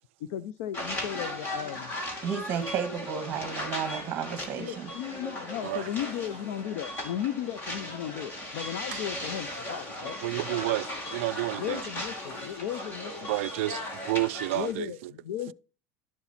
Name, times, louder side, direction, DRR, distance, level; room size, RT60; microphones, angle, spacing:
voice 1, 0.2-1.9 4.6-10.2 11.6-13.3 14.5-15.5, left 11 dB, 70° left, 0.6 m, -35 dB
sound 1, 0.7-14.7, left 1 dB, 30° left, 2.4 m, -37 dB
voice 2, 2.2-4.9, right 7 dB, 30° right, 1.4 m, -32 dB
voice 3, 10.2-11.8 13.3-15.1, right 18 dB, 75° right, 0.4 m, -30 dB
11.5 x 7.1 x 4.2 m
supercardioid pair, 165°, 7 cm